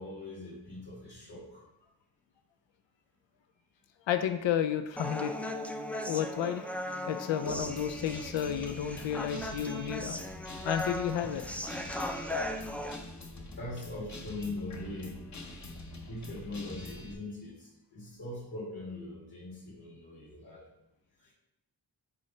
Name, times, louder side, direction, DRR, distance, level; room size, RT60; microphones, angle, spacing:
voice 1, 0.0-1.6 13.6-15.3 16.1-20.6 21.2-21.3, left 2 dB, 60° left, -8 dB, 2.6 m, -41 dB
voice 2, 4.1-5.3 6.0-6.6 7.1-10.2 10.6-11.4, left 9 dB, 80° left, 9 dB, 0.5 m, -31 dB
Human voice, 5.0-13.0, left 1 dB, 5° left, 0.4 m, -37 dB
Guitar, 7.5-17.1, left 1 dB, 40° left, 0.9 m, -45 dB
9.7 x 3.9 x 3.2 m, 0.90 s
wide cardioid pair, 90°, 44 cm